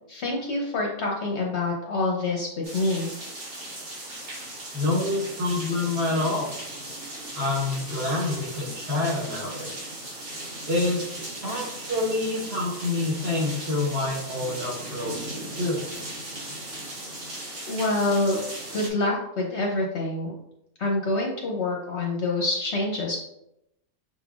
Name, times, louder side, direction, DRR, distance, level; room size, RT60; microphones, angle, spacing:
voice 1, 0.1-3.1 17.7-18.4 18.7-20.3 20.8-23.2, left 2 dB, 55° left, -1 dB, 0.9 m, -26 dB
sound 1, 2.6-18.9, right 1 dB, 80° right, 2.1 m, -37 dB
voice 2, 4.7-6.5 7.3-9.7 10.7-11.0 11.4-15.8, left 2 dB, 45° right, -4 dB, 1.4 m, -27 dB
5.8 x 3.7 x 2.4 m, 0.81 s
omnidirectional pair, 1.6 m